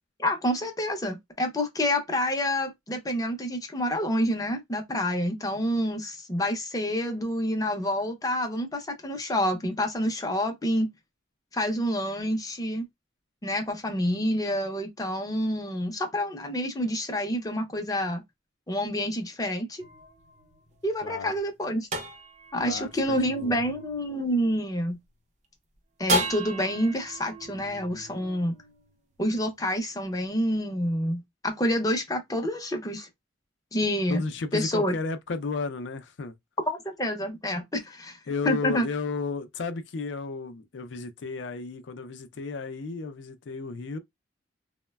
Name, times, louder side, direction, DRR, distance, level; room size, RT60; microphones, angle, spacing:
voice 1, 0.2-10.9 11.5-12.8 13.4-18.2 18.7-19.8 20.8-21.9 22.5-25.0 26.0-28.6 29.2-33.1 33.7-34.2 34.5-35.0 36.7-38.2 38.5-38.9, equal, 20° left, 0.5 m, -28 dB
sound 1, 19.8-25.1 26.1-29.4, right 1 dB, 40° right, 0.5 m, -35 dB
voice 2, 21.0-21.3 22.6-23.6 34.1-36.3 38.3-44.0, left 4 dB, 70° left, 0.4 m, -33 dB
3.0 x 2.1 x 2.2 m
head